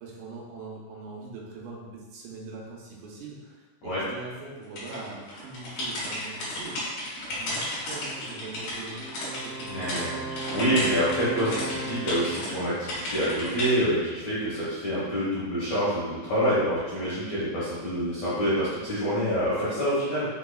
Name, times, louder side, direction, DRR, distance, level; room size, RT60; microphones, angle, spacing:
voice 1, 0.0-6.8 7.3-9.9, right 3 dB, 85° right, -3 dB, 3.0 m, -42 dB
sound 1, 4.8-10.0 10.4-12.5 12.9-13.7, left 1 dB, 60° left, 2.8 m, -33 dB
Wind instrument woodwind instrument, 8.9-12.8, right 2 dB, 70° right, 2.4 m, -36 dB
voice 2, 9.7-20.3, equal, 80° left, -11 dB, 1.5 m, -27 dB
6.8 x 3.2 x 2.3 m, 1.3 s
omnidirectional pair, 5.2 m